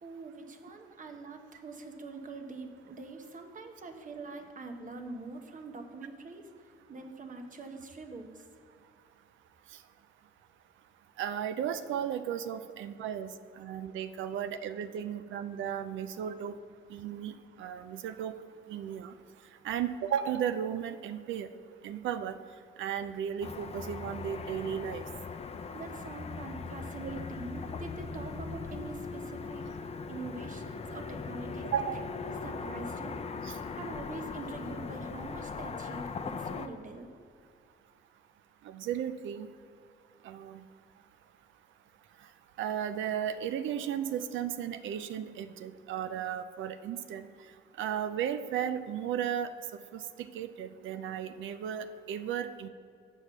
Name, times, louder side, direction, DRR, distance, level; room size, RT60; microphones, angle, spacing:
voice 1, 0.0-6.5 6.9-8.4 25.7-29.6 30.1-31.7 32.1-33.2 33.7-37.1, right 3 dB, 40° right, 5 dB, 1.0 m, -44 dB
voice 2, 11.2-13.3 13.6-16.5 16.9-18.4 18.7-19.1 19.6-21.5 21.8-22.4 22.8-25.0 31.7-32.1 33.4-33.5 38.7-39.5 40.2-40.6 42.6-47.3 47.8-49.5 49.9-50.0 50.3-52.7, right 9 dB, 75° right, 11 dB, 0.5 m, -35 dB
Car passing by / Traffic noise roadway noise, 23.4-36.7, left 5 dB, 30° left, 0.5 m, -40 dB
6.4 x 5.3 x 7.0 m, 2.3 s
cardioid pair, 90°, 20 cm